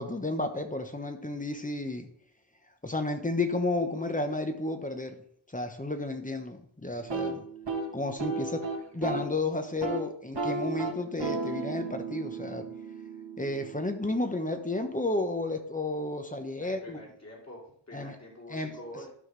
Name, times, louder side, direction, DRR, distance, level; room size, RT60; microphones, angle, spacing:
voice 1, 0.0-2.1 2.8-5.2 5.5-7.4 7.9-8.6 8.9-12.7 13.4-17.0 17.9-18.2 18.5-18.7, left 2 dB, 20° left, 6 dB, 1.0 m, -32 dB
sound 1, 7.0-9.3 9.7-10.0 10.3-14.2, right 3 dB, 75° right, 1.9 m, -34 dB
voice 2, 16.6-19.1, left 1 dB, 35° left, -2 dB, 2.9 m, -46 dB
12.5 x 5.8 x 3.3 m, 0.63 s
wide cardioid pair, 90°, 44 cm